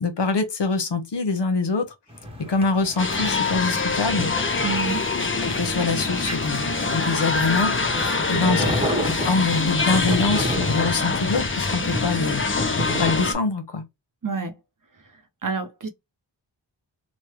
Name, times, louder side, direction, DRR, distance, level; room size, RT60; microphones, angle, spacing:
voice 1, 0.0-1.9 2.5-4.3 5.4-6.6 6.9-8.6 9.2-12.4 12.8-13.8, left 4 dB, 65° left, 0.9 m, -24 dB
sound 1, 2.1-13.1, equal, 10° right, 1.1 m, -32 dB
sound 2, 3.0-13.3, left 4 dB, 30° left, 0.6 m, -25 dB
voice 2, 4.6-5.1 8.3-8.9 14.2-14.5 15.4-15.9, right 4 dB, 45° right, 0.7 m, -28 dB
3.1 x 2.2 x 3.0 m
cardioid pair, 50°, 45 cm